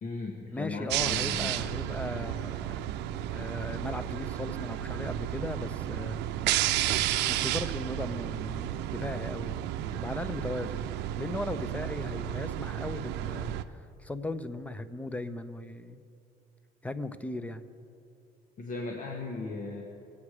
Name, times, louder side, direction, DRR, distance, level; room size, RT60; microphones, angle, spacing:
voice 1, 0.0-1.5 18.6-19.8, left 3 dB, 50° left, 0 dB, 1.5 m, -37 dB
voice 2, 0.5-2.8 3.3-6.2 7.3-16.0 16.8-17.7, left 2 dB, 10° left, 12 dB, 0.6 m, -37 dB
sound 1, 0.9-13.6, right 12 dB, 90° right, 0.5 m, -32 dB
21.5 x 8.6 x 4.9 m, 2.6 s
cardioid pair, 110°, 17 cm